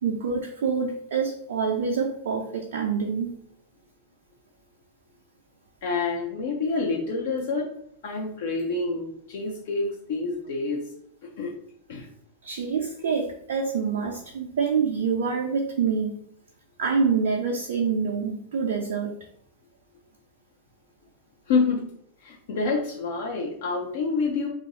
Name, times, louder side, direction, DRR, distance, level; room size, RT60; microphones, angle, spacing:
voice 1, 0.0-3.3 12.4-16.1 16.8-19.2, right 5 dB, 60° right, 2 dB, 0.4 m, -26 dB
voice 2, 5.8-7.7 8.0-10.8 11.2-11.5 11.9-12.1 21.5-21.8 22.2-24.5, left 4 dB, 55° left, -1 dB, 0.6 m, -27 dB
3.0 x 2.4 x 4.0 m, 0.72 s
figure-of-eight pair, 90°, 0 cm